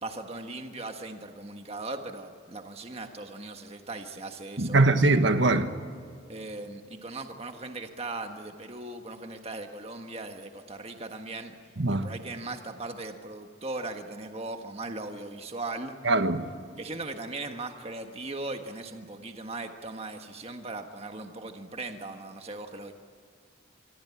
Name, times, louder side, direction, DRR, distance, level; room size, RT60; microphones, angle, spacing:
voice 1, 0.0-4.9 6.3-11.5 11.9-15.9 16.8-22.9, right 2 dB, 30° right, 1.5 m, -38 dB
voice 2, 4.6-5.7 11.8-12.1 16.0-16.5, right 2 dB, 65° right, 1.5 m, -22 dB
25.5 x 24.5 x 8.6 m
head